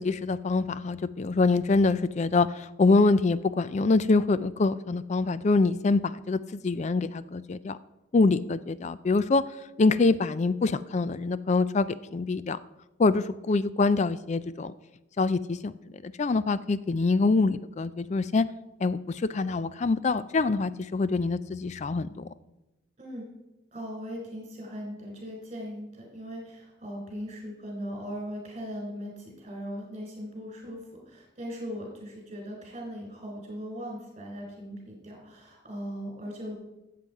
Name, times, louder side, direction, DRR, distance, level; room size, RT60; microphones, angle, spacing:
voice 1, 0.0-7.8 8.1-9.4 9.8-12.6 13.0-14.7 15.2-15.7 16.0-18.4 18.8-22.2, left 3 dB, 35° left, 16 dB, 0.3 m, -25 dB
voice 2, 23.7-36.5, equal, 30° right, 0 dB, 4.0 m, -39 dB
13.0 x 7.7 x 4.8 m, 0.97 s
head